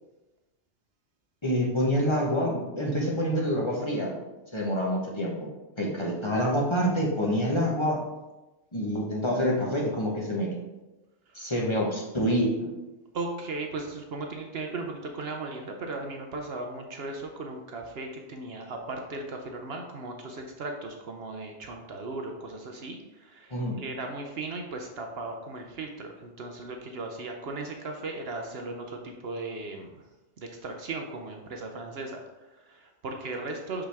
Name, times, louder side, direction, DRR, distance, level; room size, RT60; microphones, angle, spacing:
voice 1, 1.4-4.2 4.5-5.5 5.8-8.0 8.7-10.5 11.3-12.7 23.5-23.8, equal, 25° left, -3 dB, 1.1 m, -27 dB
voice 2, 13.1-30.0 30.4-33.9, right 3 dB, 60° right, 3 dB, 0.9 m, -37 dB
6.0 x 5.4 x 3.4 m, 1.1 s
omnidirectional pair, 1.2 m